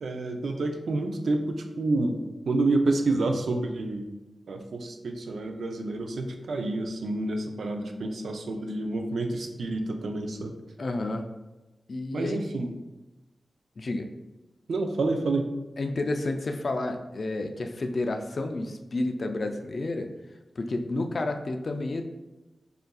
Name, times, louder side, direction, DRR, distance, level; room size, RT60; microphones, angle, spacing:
voice 1, 0.0-4.1 4.5-10.5 12.1-12.7 14.7-15.5, right 2 dB, 85° right, 5 dB, 0.4 m, -28 dB
voice 2, 10.8-11.2 11.9-12.4 13.8-14.1 15.8-20.1 20.6-22.0, left 2 dB, 45° left, 5 dB, 0.3 m, -30 dB
6.6 x 2.5 x 2.3 m, 1.1 s
wide cardioid pair, 155°, 0 cm